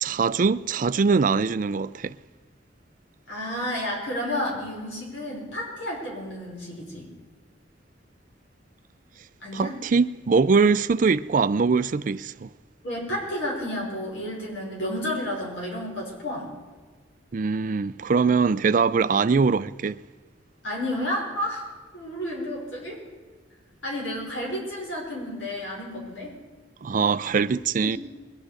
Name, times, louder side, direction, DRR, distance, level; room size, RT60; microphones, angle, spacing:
voice 1, 0.0-2.1 9.5-12.5 17.3-20.0 26.8-28.0, right 5 dB, 45° right, 0.4 m, -22 dB
voice 2, 3.3-7.0 9.4-9.7 12.8-16.5 20.6-21.7 21.9-23.0 23.8-26.3 27.8-27.9, left 1 dB, 75° left, 5.3 m, -31 dB
21.5 x 10.5 x 5.0 m
head